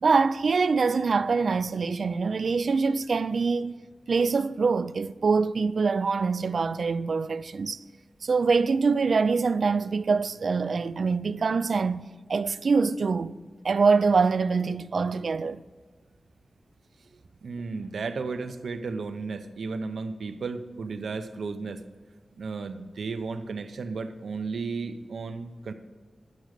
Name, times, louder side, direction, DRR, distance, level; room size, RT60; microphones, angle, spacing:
voice 1, 0.0-3.7 4.1-7.8 8.2-12.0 12.3-13.3 13.6-15.6, right 4 dB, 70° right, 0.3 m, -24 dB
voice 2, 17.4-21.8 22.4-25.7, right 4 dB, 85° right, 0.7 m, -34 dB
10.5 x 6.2 x 6.6 m
wide cardioid pair, 85°, 0 cm